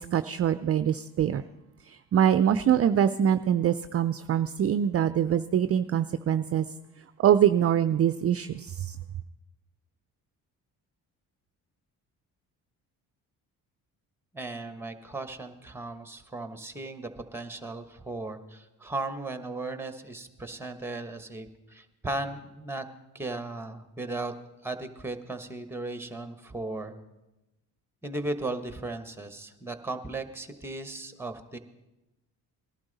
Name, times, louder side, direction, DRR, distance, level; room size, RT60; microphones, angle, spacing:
voice 1, 0.0-1.4 1.9-6.6 7.2-9.0, right 9 dB, 40° right, 12 dB, 0.4 m, -24 dB
voice 2, 14.3-22.8 23.1-24.3 24.6-26.9 28.0-31.6, right 2 dB, 5° right, 8 dB, 1.2 m, -36 dB
18.5 x 12.0 x 4.0 m, 0.99 s
cardioid pair, 75°, 38 cm